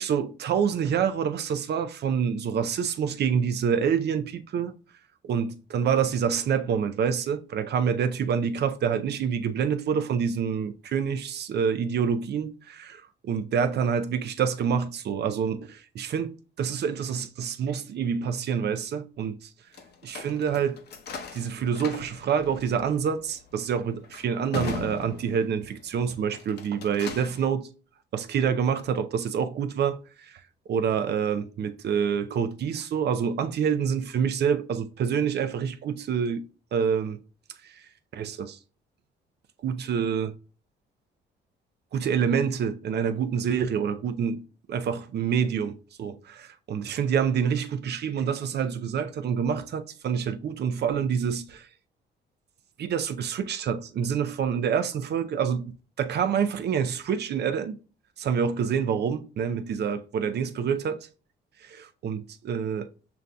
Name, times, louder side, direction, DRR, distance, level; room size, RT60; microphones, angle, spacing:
voice 1, 0.0-4.7 5.2-19.5 20.0-20.8 21.3-27.7 28.1-30.4 30.7-36.4 36.7-37.2 37.6-37.9 38.1-38.6 39.6-40.3 41.9-44.4 44.7-51.7 52.8-55.7 56.0-57.8 58.2-61.1 61.6-62.9, right 7 dB, 55° right, 0.5 m, -27 dB
sound 1, 19.7-25.8 26.2-27.5, left 5 dB, 55° left, 0.8 m, -40 dB
6.9 x 2.6 x 2.2 m
cardioid pair, 90°, 20 cm